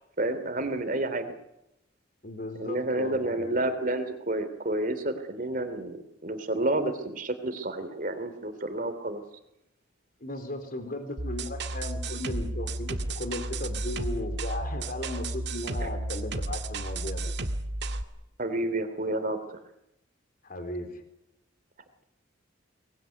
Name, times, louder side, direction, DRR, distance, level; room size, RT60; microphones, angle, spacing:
voice 1, 0.2-1.3 2.6-9.2 15.8-15.9 18.4-19.6, right 1 dB, 45° right, 10 dB, 3.1 m, -30 dB
voice 2, 2.2-3.6 10.2-17.3 20.4-21.0, left 1 dB, 45° left, 7 dB, 4.1 m, -36 dB
sound 1, 11.2-18.0, right 2 dB, 60° right, 2.0 m, -32 dB
24.5 x 20.5 x 9.4 m, 0.86 s
head